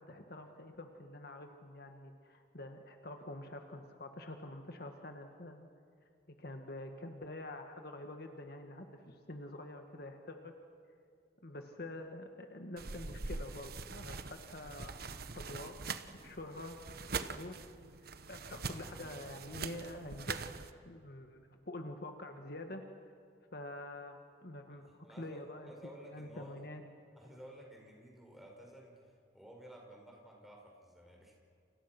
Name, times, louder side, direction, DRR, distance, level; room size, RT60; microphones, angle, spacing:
voice 1, 0.0-5.7 6.4-10.5 11.4-16.8 17.3-17.6 18.3-20.4 20.9-22.8 23.5-24.9 25.2-26.8, left 1 dB, 55° left, 5 dB, 1.8 m, -47 dB
sound 1, 12.8-20.7, right 4 dB, 55° right, 1.1 m, -43 dB
voice 2, 24.7-26.6 27.2-31.4, equal, ahead, -1 dB, 5.5 m, -54 dB
29.5 x 29.5 x 6.1 m, 2.3 s
head